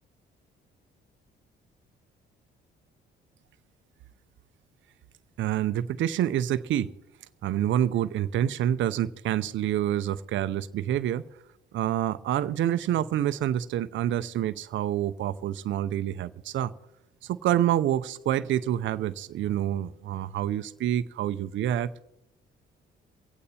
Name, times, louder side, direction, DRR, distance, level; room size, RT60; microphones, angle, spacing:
voice 1, 5.4-6.9 7.4-11.2 11.7-16.7 17.2-22.0, right 11 dB, 75° right, 12 dB, 0.6 m, -27 dB
24.0 x 8.6 x 4.2 m, 0.87 s
cardioid pair, 90°, 20 cm